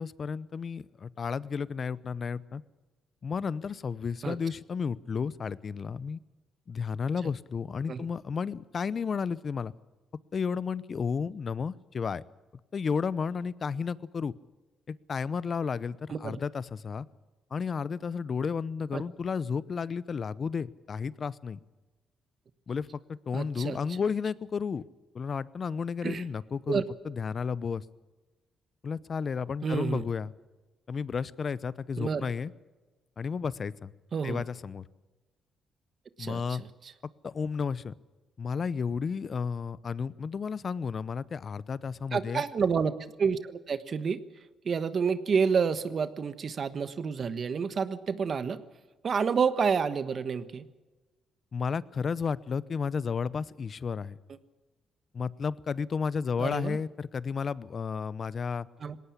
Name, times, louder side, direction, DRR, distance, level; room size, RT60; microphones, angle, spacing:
voice 1, 0.0-2.6 3.2-6.2 6.7-9.7 10.3-12.2 12.7-14.3 14.9-17.1 17.5-21.6 22.7-24.8 25.1-27.8 28.8-30.3 30.9-32.5 33.2-33.9 34.2-34.8 36.2-36.6 37.2-37.9 38.4-42.4 51.5-54.2 55.1-58.7, left 6 dB, 45° left, 19 dB, 0.8 m, -32 dB
voice 2, 23.3-23.8 26.0-26.2 26.7-26.8 29.6-30.0 32.0-32.3 34.1-34.4 36.2-36.7 42.1-44.2 44.6-48.6 49.0-50.6 56.4-56.8 58.8-59.0, right 6 dB, 50° right, 12 dB, 1.3 m, -29 dB
19.5 x 18.0 x 8.5 m, 1.2 s
cardioid pair, 90°, 0 cm